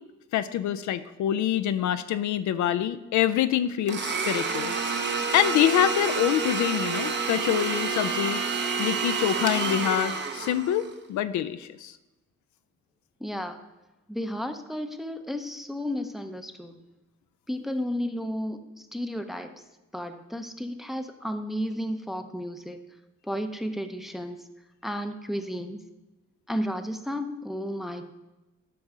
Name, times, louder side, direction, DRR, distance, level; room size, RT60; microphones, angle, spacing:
voice 1, 0.3-4.7 5.3-8.4 8.8-12.0, left 11 dB, 75° left, 13 dB, 0.5 m, -26 dB
Domestic sounds home sounds, 3.9-10.9, right 5 dB, 35° right, 0.9 m, -29 dB
voice 2, 13.2-13.6 14.1-16.8 17.5-19.5 19.9-22.8 23.2-24.4 24.8-25.8 26.5-28.1, equal, ahead, 7 dB, 0.6 m, -33 dB
8.6 x 5.3 x 4.8 m, 1.0 s
cardioid pair, 90°, 30 cm